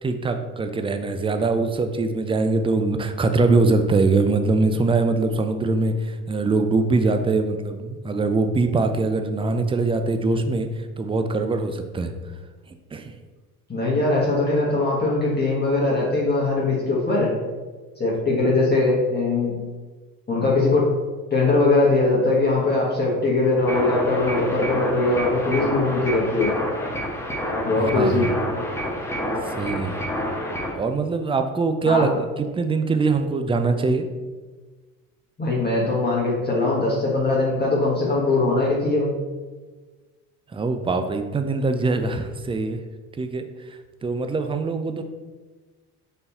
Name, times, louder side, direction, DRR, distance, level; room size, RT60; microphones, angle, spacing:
voice 1, 0.0-12.1 12.9-13.1 27.8-28.3 29.5-30.0 30.7-34.1 40.5-42.8 43.2-43.4 44.0-45.0, right 3 dB, 10° right, 7 dB, 0.5 m, -22 dB
voice 2, 13.7-17.3 18.0-19.6 20.3-20.9 21.3-26.5 27.6-28.3 31.8-32.0 35.4-39.1, left 2 dB, 20° left, -5 dB, 1.6 m, -21 dB
sound 1, 23.7-30.7, equal, 5° left, 1.4 m, -28 dB
5.3 x 4.3 x 4.3 m, 1.3 s
hypercardioid pair, 60°, 46 cm